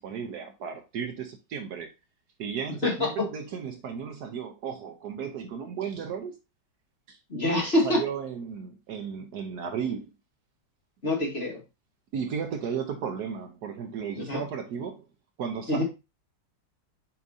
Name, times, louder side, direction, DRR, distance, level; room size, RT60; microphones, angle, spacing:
voice 1, 0.0-1.9 2.4-6.3 7.1-7.2 7.8-10.1 12.1-15.1 15.4-15.8, right 7 dB, 65° right, 1.2 m, -34 dB
voice 2, 2.8-3.3 7.3-8.0 11.0-11.6 14.2-14.4 15.7-15.8, left 1 dB, 35° left, 2.2 m, -25 dB
7.1 x 5.2 x 2.6 m
omnidirectional pair, 2.0 m